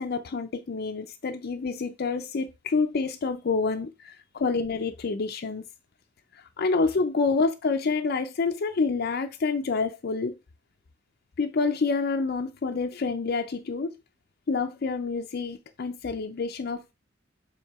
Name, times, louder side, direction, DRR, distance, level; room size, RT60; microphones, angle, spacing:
voice 1, 0.0-5.6 6.3-10.4 11.4-13.9 14.5-16.9, left 4 dB, 55° left, 0.5 m, -28 dB
7.5 x 2.7 x 4.6 m
head